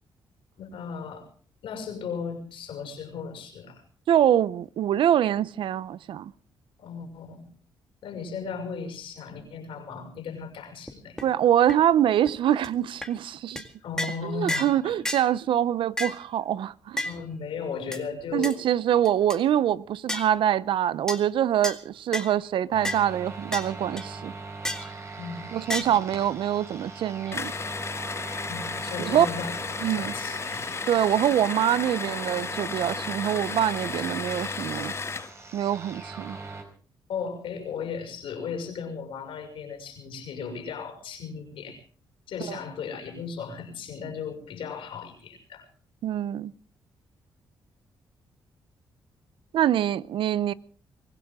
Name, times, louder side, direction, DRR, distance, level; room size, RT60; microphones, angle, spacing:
voice 1, 0.6-1.3 1.6-3.8 6.8-7.4 8.0-11.3 13.8-15.0 17.0-18.6 25.1-25.9 28.5-29.6 29.8-30.8 37.1-41.8 42.3-45.7, left 6 dB, 80° left, 6.1 m, -36 dB
voice 2, 4.1-6.3 11.2-13.6 14.2-17.1 18.3-24.3 25.5-27.5 29.0-29.3 29.8-30.1 30.9-34.9 35.5-36.4 42.5-42.6 46.0-46.5 49.5-50.5, right 10 dB, 75° right, 0.7 m, -24 dB
sound 1, 10.9-11.0 11.2-11.3 11.7-11.8 12.3-12.4 12.6-12.7 13.0-13.1 13.6-13.7 14.0-14.2 14.5-14.8 15.0-15.3 16.0-16.2 17.0-17.2 17.9-18.0 18.4-18.5 19.0-19.4 20.1-20.3 21.1-21.2 21.6-21.8 22.1-22.3 22.8-23.0 23.5-23.7 24.0-24.1 24.6-24.9 25.7-25.8, left 1 dB, 5° left, 2.1 m, -31 dB
sound 2, 22.7-36.6, right 3 dB, 30° right, 4.7 m, -40 dB
sound 3, 27.3-35.3, left 5 dB, 30° left, 0.7 m, -34 dB
24.5 x 16.0 x 3.7 m
cardioid pair, 90°, 9 cm